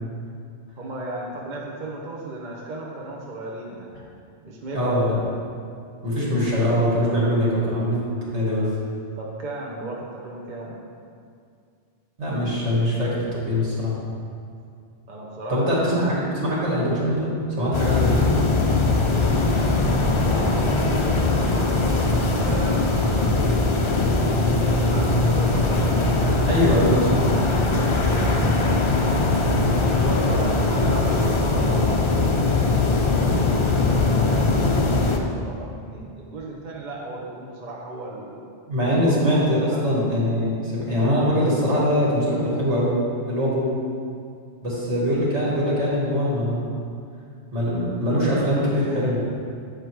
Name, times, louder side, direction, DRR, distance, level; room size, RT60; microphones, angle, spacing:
voice 1, 0.8-3.9 4.4-5.3 9.1-10.8 15.1-16.1 18.9-23.5 24.4-26.4 27.1-29.0 29.9-38.4 38.9-40.1, right 2 dB, 45° right, -3 dB, 1.0 m, -36 dB
voice 2, 4.7-5.2 6.0-8.7 12.2-14.0 15.5-18.3 22.3-22.4 26.5-27.3 38.7-43.0 43.3-43.8 44.6-46.6 47.5-49.2, equal, 75° right, -6 dB, 2.2 m, -22 dB
sound 1, 17.7-35.2, left 2 dB, 40° left, 0.4 m, -21 dB
8.4 x 5.0 x 4.6 m, 2.3 s
omnidirectional pair, 1.2 m